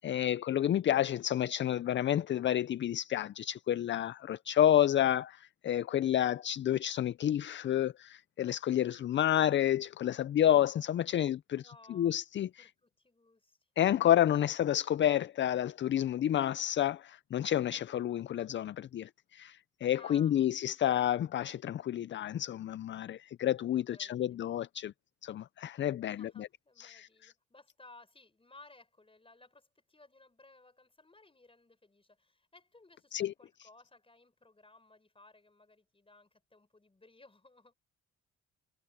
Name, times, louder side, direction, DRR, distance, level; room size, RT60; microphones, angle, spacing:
voice 1, 0.0-12.7 13.8-24.9 25.2-26.5 26.8-27.3 33.1-33.3, left 11 dB, 40° left, 0.4 m, -30 dB
voice 2, 11.6-12.2 12.6-13.6 19.9-20.5 23.7-24.4 26.0-37.7, left 2 dB, 20° left, 6.0 m, -59 dB
cardioid pair, 90°, 30 cm